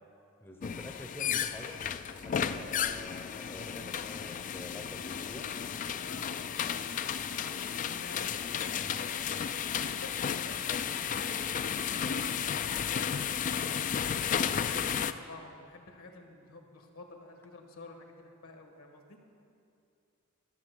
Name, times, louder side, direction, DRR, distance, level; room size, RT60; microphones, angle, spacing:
voice 1, 0.4-1.8 2.2-5.5, left 1 dB, 10° left, 2 dB, 0.7 m, -47 dB
sound 1, 0.6-15.1, left 8 dB, 35° left, 0.3 m, -33 dB
voice 2, 6.0-9.2 9.8-19.2, left 2 dB, 70° left, 3 dB, 1.5 m, -50 dB
12.5 x 8.3 x 6.5 m, 2.5 s
head